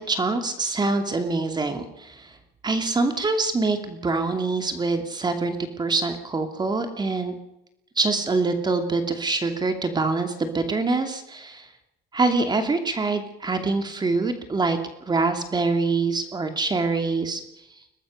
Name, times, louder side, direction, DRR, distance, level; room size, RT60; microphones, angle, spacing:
voice 1, 0.0-2.4 2.6-7.3 8.0-11.7 12.1-14.8 15.1-17.4, right 3 dB, 25° right, 7 dB, 2.6 m, -25 dB
22.5 x 19.0 x 6.6 m, 0.87 s
cardioid pair, 110°, 17 cm